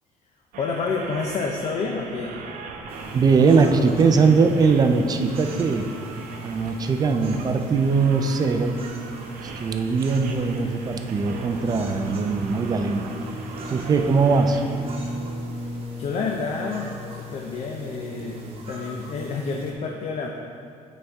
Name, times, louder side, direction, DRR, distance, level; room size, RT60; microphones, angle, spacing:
sound 1, 0.5-14.8, right 4 dB, 75° right, 0.7 m, -41 dB
voice 1, 0.6-2.4 15.5-18.4 18.7-20.3, left 4 dB, 50° left, 1 dB, 0.5 m, -29 dB
sound 2, 2.9-19.7, right 1 dB, 45° right, 1.1 m, -37 dB
voice 2, 3.1-5.9 6.4-8.8 9.6-13.1 13.7-14.6, right 4 dB, 30° right, 6 dB, 0.4 m, -20 dB
9.0 x 4.2 x 3.5 m, 2.3 s
cardioid pair, 135°, 14 cm